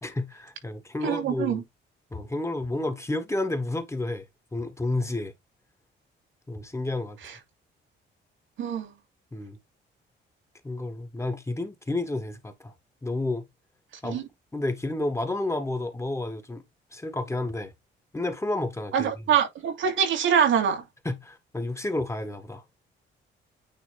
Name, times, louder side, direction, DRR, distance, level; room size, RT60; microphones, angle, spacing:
voice 1, 0.0-1.6 2.1-5.3 6.5-7.2 9.3-9.6 10.6-12.7 13.0-13.4 14.0-14.2 14.5-16.6 16.9-17.7 18.1-19.2 21.1-22.6, left 2 dB, 15° left, 1.6 m, -31 dB
voice 2, 1.0-1.6 8.6-8.9 14.0-14.2 18.9-20.8, right 8 dB, 80° right, 2.8 m, -24 dB
9.3 x 3.3 x 3.4 m
cardioid pair, 90°, 20 cm